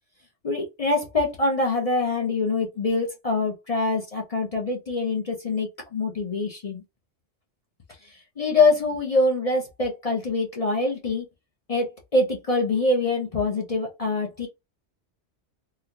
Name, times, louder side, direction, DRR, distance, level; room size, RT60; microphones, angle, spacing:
voice 1, 0.4-6.8 8.0-11.3 11.7-14.5, left 3 dB, 40° left, 0.6 m, -24 dB
3.8 x 2.2 x 2.8 m
omnidirectional pair, 1.2 m